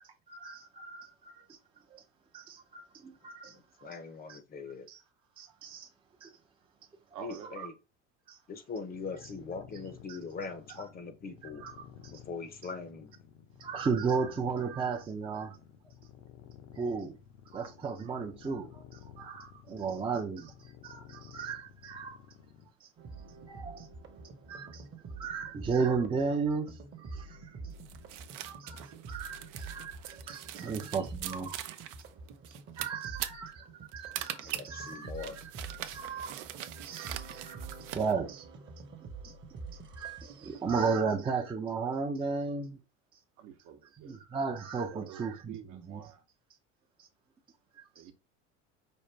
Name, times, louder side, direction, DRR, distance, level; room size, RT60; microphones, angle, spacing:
voice 1, 0.3-1.6 1.9-2.0 2.3-3.9 4.3-4.4 4.9-5.0 5.4-5.9 6.2-6.3 7.6-7.7 8.3-8.4 10.1-10.2 11.6-12.1 13.6-15.6 16.7-17.2 17.5-22.2 22.8-22.9 23.5-23.9 24.5-24.8 25.2-27.5 28.4-28.8 29.1-31.8 32.8-33.7 33.9-36.4 36.8-37.6 37.9-38.5 39.2-39.3 40.0-42.8 44.0-45.5 45.9-46.0 47.8-48.0, right 5 dB, 15° right, 0.5 m, -35 dB
voice 2, 3.8-4.9 7.2-7.7 8.5-11.6 12.1-13.1 30.5-30.7 34.4-35.4, left 5 dB, 25° left, 0.7 m, -41 dB
voice 3, 7.1-7.6 18.1-18.2 43.4-44.2 44.9-46.2 47.9-48.1, right 9 dB, 60° right, 1.0 m, -47 dB
sound 1, 8.9-22.7, left 8 dB, 75° left, 1.0 m, -53 dB
sound 2, 23.0-40.8, right 3 dB, 30° right, 0.9 m, -47 dB
sound 3, 27.8-38.1, right 12 dB, 85° right, 0.6 m, -42 dB
5.3 x 2.5 x 3.2 m
supercardioid pair, 105°, 36 cm